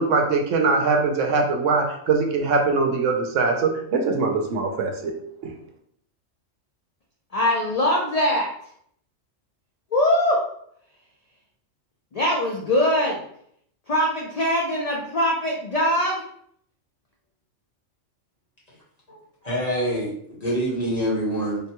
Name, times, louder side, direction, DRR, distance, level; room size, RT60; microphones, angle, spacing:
voice 1, 0.0-5.1, right 4 dB, 75° right, 2 dB, 0.9 m, -22 dB
voice 2, 7.3-8.5 9.9-10.4 12.1-13.2 13.9-16.2, left 1 dB, 65° left, -3 dB, 0.3 m, -22 dB
voice 3, 19.4-21.6, equal, 35° left, -7 dB, 1.1 m, -25 dB
3.4 x 2.2 x 2.8 m, 0.67 s
omnidirectional pair, 1.3 m